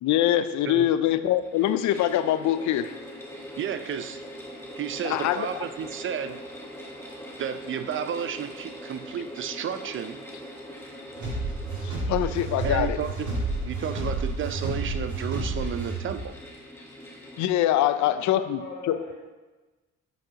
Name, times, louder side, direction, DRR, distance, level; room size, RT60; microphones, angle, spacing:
voice 1, 0.0-2.9 5.0-5.5 11.8-13.0 17.4-18.6 18.9-19.0, left 12 dB, 70° left, 12 dB, 0.5 m, -24 dB
sound 1, 1.3-17.5, equal, 10° left, 1.3 m, -43 dB
voice 2, 3.6-4.2 4.7-6.4 7.4-10.2 12.6-13.3 13.6-16.3, right 8 dB, 40° right, 10 dB, 0.5 m, -32 dB
sound 2, 11.2-16.2, right 2 dB, 70° right, 1.9 m, -30 dB
voice 3, 17.6-19.3, left 3 dB, 40° left, -11 dB, 2.0 m, -40 dB
7.6 x 4.7 x 2.9 m, 1.2 s
cardioid pair, 90°, 30 cm